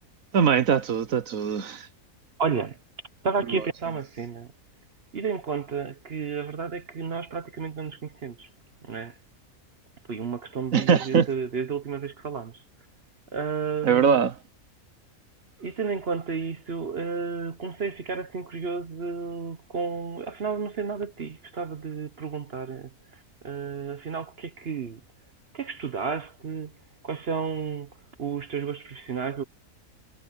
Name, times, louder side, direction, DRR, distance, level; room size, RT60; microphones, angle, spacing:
voice 1, 0.3-1.9 10.7-11.3 13.8-14.3, right 6 dB, 70° right, 1.4 m, -21 dB
voice 2, 2.4-2.8 3.2-4.5 5.1-8.5 8.8-9.2 10.1-12.6 13.3-14.2 15.6-25.0 25.5-26.7 27.0-27.9 28.2-29.4, right 5 dB, 50° right, 1.1 m, -32 dB
omnidirectional pair, 1.5 m